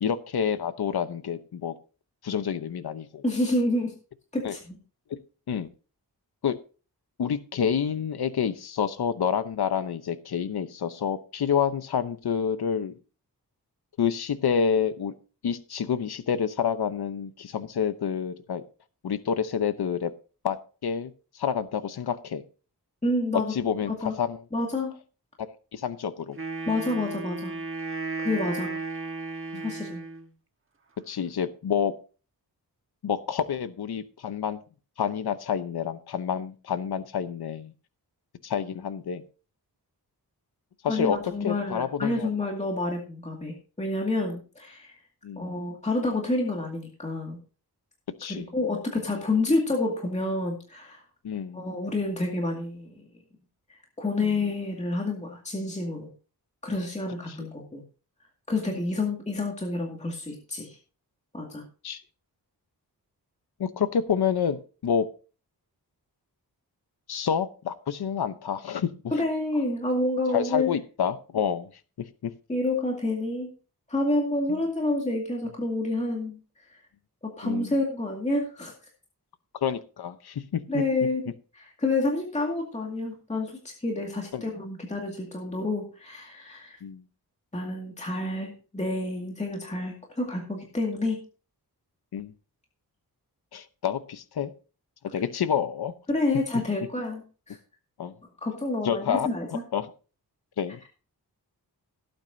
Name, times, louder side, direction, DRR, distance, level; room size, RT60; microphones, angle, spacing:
voice 1, 0.0-1.7 2.2-3.2 4.4-4.6 5.1-5.2 5.5-5.7 6.4-6.6 7.2-12.9 14.0-15.1 15.4-18.6 19.0-20.1 20.4-20.6 20.8-22.4 23.5-24.4 25.7-26.4 29.5-29.6 31.1-31.9 33.0-34.6 35.0-37.7 38.4-39.2 40.8-41.2 41.4-42.3 45.2-45.6 48.2-48.4 51.2-51.6 54.2-54.3 57.3-57.4 61.8-62.0 63.6-65.1 67.1-68.9 70.3-71.7 72.2-72.3 74.5-74.6 77.4-77.7 79.6-80.8 84.3-84.4 86.8-87.0 92.1-92.3 93.5-94.5 95.1-95.9 98.0-98.1 98.8-99.9 100.6-100.8, left 7 dB, 70° left, 12 dB, 0.9 m, -28 dB
voice 2, 3.2-3.9 4.3-4.8 23.0-23.5 23.9-24.2 24.5-24.9 26.7-27.5 28.2-28.7 29.6-30.0 40.9-44.9 45.4-47.4 48.3-51.0 51.5-53.0 53.7-56.1 56.6-57.8 58.5-60.8 61.3-61.6 69.1-70.7 72.5-73.5 73.9-76.8 77.2-78.7 80.7-81.3 81.5-86.8 87.5-91.2 96.1-97.6 98.4-99.6, left 2 dB, 15° left, 0 dB, 2.2 m, -29 dB
Wind instrument woodwind instrument, 26.3-30.3, right 3 dB, 30° right, 1.3 m, -34 dB
17.0 x 8.9 x 2.7 m, 0.35 s
wide cardioid pair, 160°, 39 cm